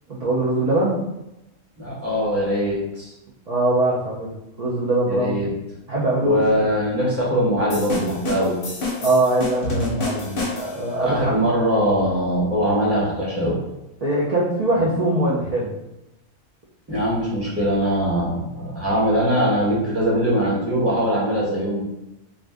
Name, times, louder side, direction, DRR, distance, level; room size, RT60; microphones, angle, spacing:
voice 1, 0.1-1.0 3.5-5.4 5.9-6.4 9.0-11.3 14.0-15.8, right 2 dB, 90° right, -5 dB, 0.3 m, -22 dB
voice 2, 1.8-3.1 5.1-5.5 6.2-8.5 10.9-13.5 16.9-21.8, equal, 10° right, -7 dB, 0.9 m, -21 dB
sound 1, 7.7-10.9, left 2 dB, 50° left, 0.8 m, -28 dB
2.5 x 2.5 x 3.3 m, 0.91 s
omnidirectional pair, 1.4 m